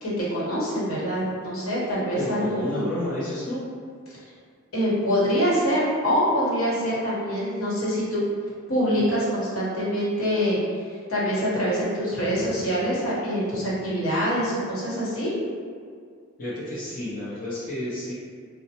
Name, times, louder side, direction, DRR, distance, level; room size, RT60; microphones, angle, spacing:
voice 1, 0.0-2.9 4.1-4.2 4.7-8.2 8.7-10.6 10.9-15.3, equal, 70° left, -7 dB, 1.0 m, -25 dB
voice 2, 2.2-3.7 16.4-18.1, left 1 dB, 40° left, -10 dB, 0.6 m, -30 dB
4.1 x 2.0 x 2.8 m, 2.1 s
head